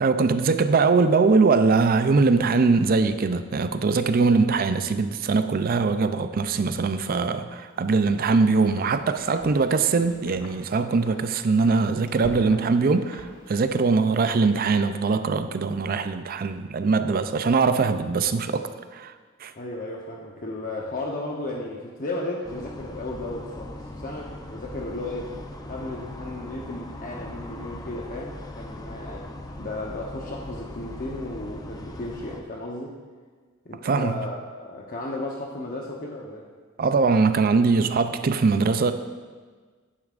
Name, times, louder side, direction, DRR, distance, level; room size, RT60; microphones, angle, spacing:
voice 1, 0.0-19.1 19.4-19.5 33.8-34.3 36.8-38.9, right 4 dB, 50° right, 10 dB, 0.4 m, -22 dB
Wind, 7.7-14.2, left 1 dB, 65° left, 1.1 m, -45 dB
voice 2, 19.6-25.3 25.7-29.3 29.6-32.9 33.6-36.5, left 2 dB, 45° left, -1 dB, 0.8 m, -34 dB
sound 1, 22.4-32.4, left 1 dB, 20° left, 0.6 m, -39 dB
10.5 x 9.5 x 2.5 m, 1.5 s
head